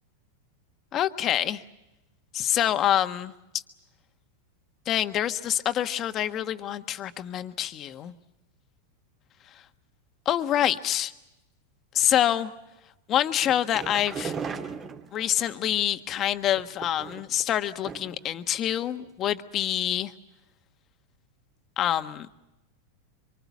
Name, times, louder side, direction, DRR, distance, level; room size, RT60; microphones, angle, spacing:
voice 1, 0.9-1.6 2.3-3.3 4.9-8.1 10.2-11.1 11.9-12.5 13.1-14.3 15.1-20.1 21.8-22.3, left 11 dB, 35° left, 9 dB, 1.4 m, -26 dB
sound 1, 13.4-15.5 16.5-17.4 17.8-18.3 18.5-18.6 19.0-19.1, right 5 dB, 25° right, 2.3 m, -37 dB
25.5 x 24.0 x 7.4 m, 0.95 s
hypercardioid pair, 115°, 0 cm